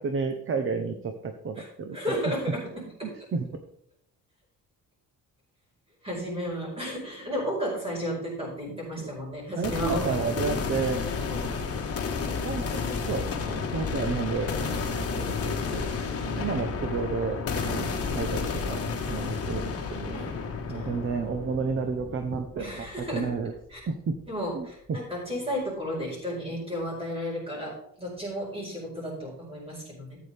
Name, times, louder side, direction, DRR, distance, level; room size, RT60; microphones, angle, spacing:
voice 1, 0.0-2.3 3.0-3.5 8.7-9.1 9.6-11.0 12.4-13.3 13.6-15.9 16.4-17.4 17.6-17.8 18.1-18.8 19.1-20.2 20.7-23.5 23.9-24.2 24.5-25.0, right 5 dB, 40° right, 6 dB, 0.9 m, -31 dB
voice 2, 1.9-3.1 6.0-10.2 11.3-11.5 13.4-13.6 16.2-16.6 17.7-18.1 19.2-19.6 20.1-20.3 20.7-20.9 22.5-23.3 23.7-23.8 24.3-30.2, equal, 15° right, -3 dB, 4.8 m, -33 dB
sound 1, 9.6-23.6, left 5 dB, 45° left, 1.5 m, -31 dB
13.5 x 8.5 x 3.5 m, 0.70 s
cardioid pair, 165°, 33 cm